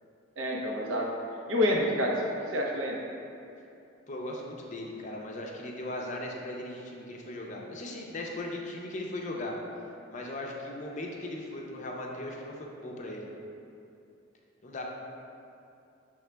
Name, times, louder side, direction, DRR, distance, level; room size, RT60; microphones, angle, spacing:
voice 1, 0.4-1.1 1.5-3.0, left 1 dB, 80° right, -1 dB, 0.6 m, -28 dB
voice 2, 4.1-9.5 10.1-13.3 14.6-14.8, left 1 dB, 40° left, -1 dB, 0.5 m, -38 dB
6.0 x 3.5 x 2.2 m, 2.6 s
head